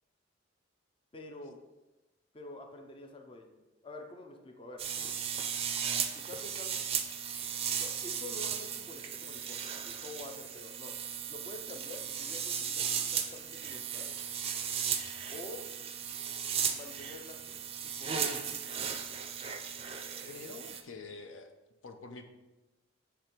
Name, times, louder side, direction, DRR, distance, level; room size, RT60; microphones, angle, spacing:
voice 1, 1.1-1.6 2.3-4.8 6.1-6.9 7.8-10.9 11.3-14.1 15.3-15.6 16.7-18.3, left 2 dB, 25° left, 3 dB, 0.5 m, -48 dB
sound 1, 4.8-20.8, right 7 dB, 30° right, 0.4 m, -36 dB
voice 2, 20.3-21.5 21.8-22.3, left 4 dB, 80° left, 6 dB, 0.6 m, -46 dB
6.7 x 3.4 x 4.4 m, 1.1 s
head